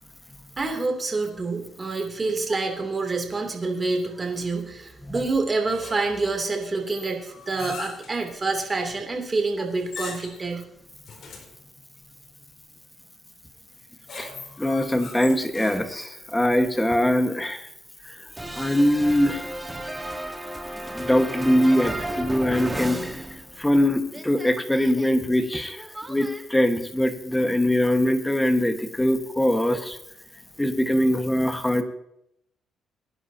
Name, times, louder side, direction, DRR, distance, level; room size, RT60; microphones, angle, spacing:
voice 1, 0.6-10.7, right 3 dB, 30° right, 2 dB, 3.0 m, -27 dB
sound 1, 5.7-6.3 6.9-8.2 9.8-10.5 11.1-11.6 13.8-16.1, left 4 dB, 60° left, 3.2 m, -40 dB
voice 2, 14.6-17.7 18.5-19.5 20.9-23.2 23.6-30.0 30.6-31.8, left 1 dB, 10° left, 7 dB, 1.5 m, -22 dB
sound 2, 18.4-23.8 24.1-26.4, right 1 dB, 10° right, 1.5 m, -34 dB
23.0 x 11.0 x 2.9 m, 0.78 s
cardioid pair, 90°, 0 cm